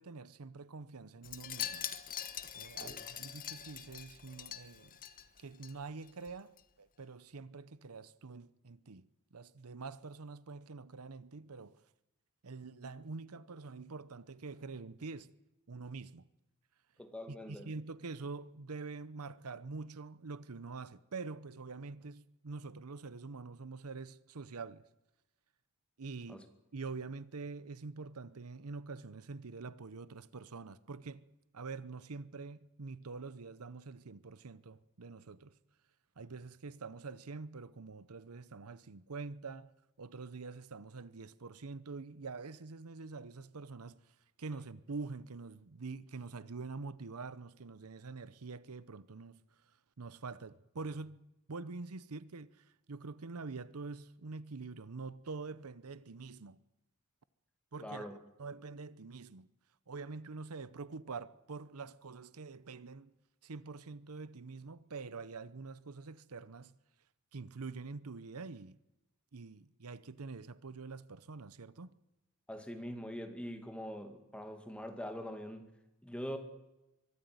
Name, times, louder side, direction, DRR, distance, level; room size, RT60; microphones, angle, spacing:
voice 1, 0.0-1.9 2.5-5.0 5.4-6.5 6.8-11.8 12.4-15.3 15.7-16.3 17.3-24.8 26.0-26.4 26.7-31.2 31.5-35.5 36.2-39.7 40.0-44.0 44.4-49.4 50.0-51.2 51.5-56.6 57.7-59.5 59.9-63.1 63.4-66.7 67.3-68.8 69.3-72.0, right 4 dB, 80° right, 0.8 m, -45 dB
Wind chime, 1.2-5.7 6.0-6.3 6.6-6.7, left 10 dB, 40° left, 1.2 m, -43 dB
voice 2, 17.0-17.7 26.3-26.5 57.8-58.2 72.5-75.7 76.0-76.4, equal, 5° left, 2.2 m, -43 dB
23.5 x 13.0 x 9.5 m
head